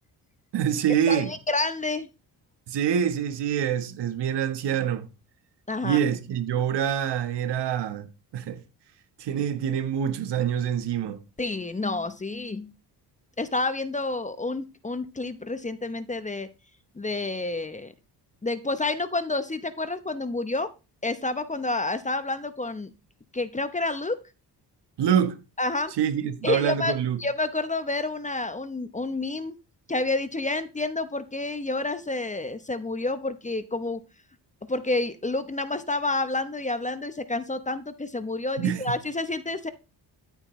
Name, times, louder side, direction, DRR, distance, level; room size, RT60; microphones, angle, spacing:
voice 1, 0.5-1.3 2.7-5.1 5.8-8.1 8.3-8.6 9.2-11.2 25.0-25.4 26.0-27.2 38.6-39.0, right 9 dB, 70° right, 1.4 m, -25 dB
voice 2, 1.1-2.1 5.7-6.0 11.4-12.7 13.4-16.5 17.0-17.9 18.4-20.7 21.0-22.9 23.3-24.2 25.6-25.9 26.4-26.9 27.2-29.5 29.9-34.0 34.7-39.7, left 2 dB, 15° left, 0.9 m, -29 dB
13.0 x 7.4 x 3.2 m
cardioid pair, 80°, 42 cm